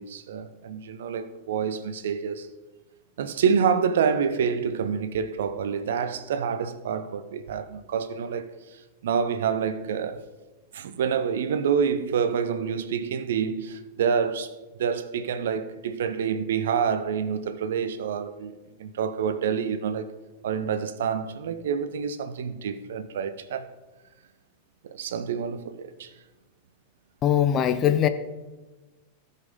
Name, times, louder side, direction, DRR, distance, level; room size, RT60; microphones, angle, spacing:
voice 1, 0.0-2.5 3.2-8.5 9.0-10.3 10.7-14.5 14.8-20.1 20.4-23.7 24.8-26.1, right 7 dB, 60° right, 0.6 m, -27 dB
voice 2, 27.2-28.1, left 10 dB, 30° left, 0.7 m, -21 dB
16.5 x 5.6 x 3.6 m
figure-of-eight pair, 90°, 0 cm